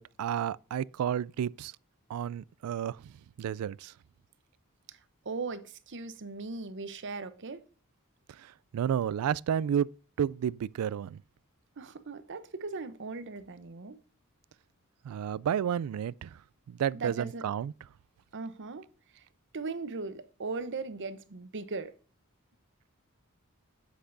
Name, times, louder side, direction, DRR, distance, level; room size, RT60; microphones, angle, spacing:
voice 1, 0.0-1.7 2.1-3.0 3.4-3.9 8.4-9.9 10.2-11.2 15.0-16.4 16.7-17.7, right 9 dB, 75° right, 0.3 m, -31 dB
voice 2, 5.2-7.6 11.8-14.0 17.0-17.4 18.3-18.9 19.1-19.3 19.5-21.9, right 4 dB, 55° right, 0.8 m, -38 dB
8.1 x 7.9 x 2.6 m
head